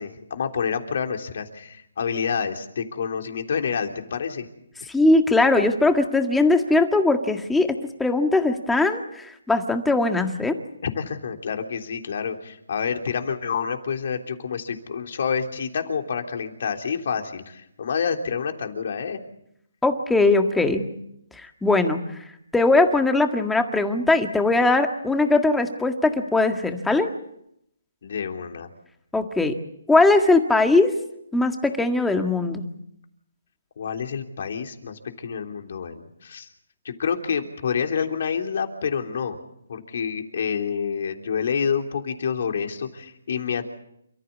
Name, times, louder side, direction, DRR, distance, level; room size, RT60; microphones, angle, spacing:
voice 1, 0.0-4.5 10.9-19.2 28.0-28.7 33.8-36.5 36.8-39.4 39.7-43.7, left 6 dB, 55° left, 4 dB, 3.4 m, -28 dB
voice 2, 4.9-10.6 19.8-20.9 21.3-22.2 22.5-27.1 29.1-29.5 29.9-30.9 31.3-32.7, left 2 dB, 5° left, 5 dB, 1.8 m, -20 dB
28.5 x 14.5 x 8.4 m, 0.77 s
hypercardioid pair, 160°, 0 cm